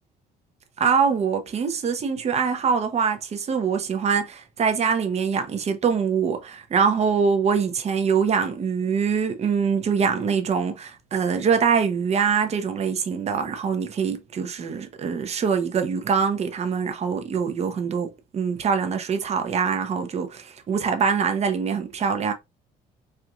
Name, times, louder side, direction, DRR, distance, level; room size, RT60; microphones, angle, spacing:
voice 1, 0.8-22.3, right 6 dB, 40° right, 0.8 m, -24 dB
4.4 x 2.4 x 2.4 m
cardioid pair, 110°, 17 cm